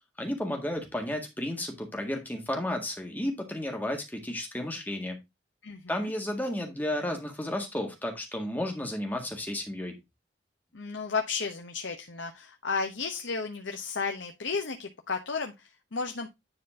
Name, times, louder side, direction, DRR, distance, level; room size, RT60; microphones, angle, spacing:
voice 1, 0.2-5.2 5.9-10.0, left 1 dB, 10° left, 3 dB, 1.8 m, -32 dB
voice 2, 5.6-6.1 10.7-16.3, left 4 dB, 85° left, 4 dB, 1.0 m, -33 dB
10.0 x 4.2 x 3.6 m, 0.21 s
head